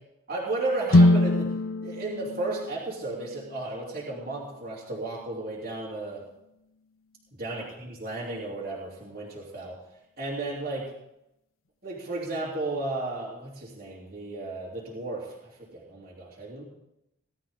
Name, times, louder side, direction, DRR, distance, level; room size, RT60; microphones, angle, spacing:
voice 1, 0.3-1.5 1.8-6.2 7.3-9.8 10.2-10.9 11.8-16.6, right 2 dB, 45° right, -7 dB, 3.3 m, -34 dB
sound 1, 0.9-5.0, left 1 dB, 80° left, 0.7 m, -24 dB
19.0 x 12.5 x 3.7 m, 0.87 s
head